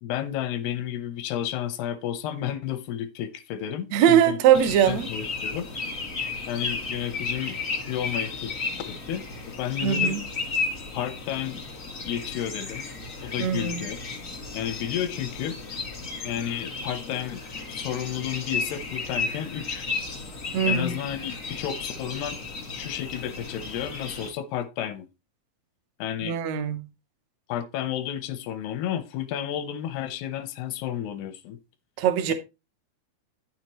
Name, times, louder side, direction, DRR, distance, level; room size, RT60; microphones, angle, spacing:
voice 1, 0.0-4.4 4.9-5.7 6.5-8.5 8.9-9.2 9.6-10.2 10.9-11.7 12.0-12.9 13.2-14.0 14.5-15.6 16.2-17.4 17.7-19.9 20.6-22.4 22.7-25.1 26.0-26.4 27.5-31.6, left 10 dB, 85° left, 2.8 m, -32 dB
voice 2, 3.9-5.1 9.8-10.2 13.4-13.8 20.5-20.9 26.2-26.8 32.0-32.3, right 9 dB, 85° right, 1.5 m, -21 dB
sound 1, 4.5-24.3, left 4 dB, 65° left, 0.8 m, -33 dB
9.2 x 8.0 x 3.0 m
omnidirectional pair, 4.5 m